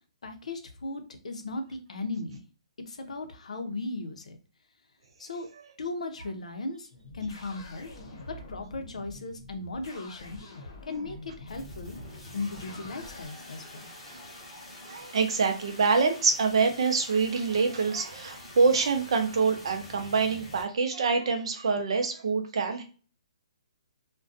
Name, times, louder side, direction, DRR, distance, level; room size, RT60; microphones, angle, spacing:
voice 1, 0.2-2.4 2.9-4.4 5.2-5.5 5.8-7.9 8.3-12.0 12.3-13.9, left 2 dB, 85° left, 6 dB, 0.6 m, -37 dB
sound 1, 6.9-13.3, left 2 dB, 45° left, 0.8 m, -46 dB
sound 2, 11.5-20.6, left 1 dB, 5° left, 0.7 m, -46 dB
voice 2, 14.9-22.8, right 4 dB, 50° right, 5 dB, 0.5 m, -25 dB
2.4 x 2.2 x 2.5 m, 0.36 s
hypercardioid pair, 175°, 4 cm